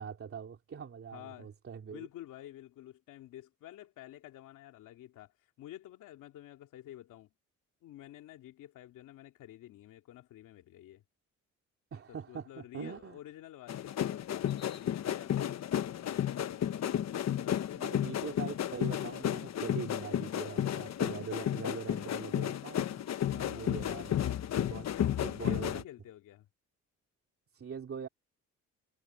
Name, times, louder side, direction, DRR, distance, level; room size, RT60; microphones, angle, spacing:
voice 1, 0.0-2.1 11.9-13.2 17.7-23.0 23.3-24.9 25.2-25.8 27.5-28.1, right 6 dB, 45° right, 3.2 m, -42 dB
voice 2, 1.1-1.5 1.9-7.3 7.8-11.0 12.1-18.5 23.3-23.9 24.9-26.5, left 13 dB, 85° left, 2.7 m, -51 dB
sound 1, 13.7-25.8, left 10 dB, 60° left, 1.2 m, -33 dB
cardioid pair, 90°, 30 cm